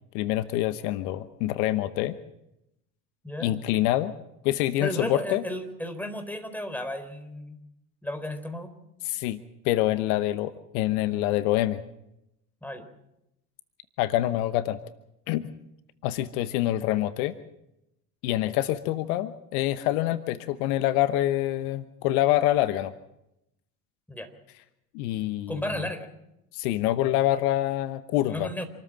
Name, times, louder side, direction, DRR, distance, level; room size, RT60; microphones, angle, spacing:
voice 1, 0.1-2.1 3.4-4.1 4.4-5.4 9.0-9.4 9.6-11.8 14.0-14.8 15.3-15.5 16.0-17.3 18.2-22.9 24.9-25.6 26.5-28.5, left 14 dB, 65° left, 13 dB, 1.1 m, -26 dB
voice 2, 4.8-7.6 8.0-8.7 12.6-12.9 24.1-24.3 25.5-26.1 28.3-28.6, left 1 dB, 5° left, 7 dB, 4.2 m, -34 dB
27.5 x 13.5 x 7.6 m, 0.86 s
hypercardioid pair, 60°, 48 cm